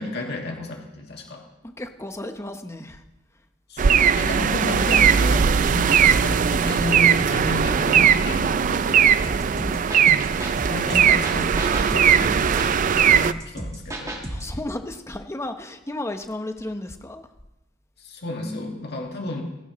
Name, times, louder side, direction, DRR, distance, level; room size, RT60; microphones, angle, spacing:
voice 1, 0.0-1.4 3.7-9.4 10.7-14.2 18.0-19.4, left 2 dB, 60° left, 1 dB, 2.0 m, -32 dB
voice 2, 1.6-3.0 9.5-9.9 14.3-17.3, left 1 dB, 15° left, 7 dB, 0.9 m, -33 dB
sound 1, 3.8-13.3, right 7 dB, 45° right, 0.4 m, -19 dB
sound 2, 9.2-14.6, right 1 dB, 15° right, 1.7 m, -33 dB
16.5 x 15.0 x 3.1 m, 0.96 s
head